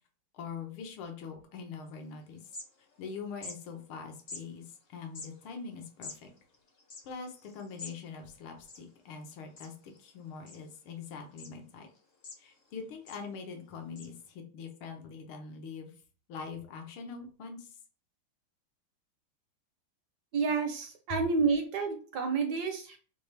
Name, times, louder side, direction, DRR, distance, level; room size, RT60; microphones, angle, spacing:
voice 1, 0.3-2.4 3.0-6.3 7.0-11.9 12.4-16.0 16.3-17.8, left 5 dB, 80° left, 4 dB, 1.8 m, -43 dB
sound 1, 1.9-2.0 2.3-3.1 3.4-3.6 4.3-4.4 5.0-8.0 8.3-8.4 8.6-9.2 9.6-10.0 10.5-11.0 11.4-11.5 11.9-12.7 13.1-13.3 13.9-14.1, left 3 dB, 50° left, 0.7 m, -46 dB
voice 2, 20.3-23.0, right 4 dB, 65° right, 5 dB, 1.1 m, -29 dB
6.6 x 2.4 x 3.3 m, 0.38 s
omnidirectional pair, 2.3 m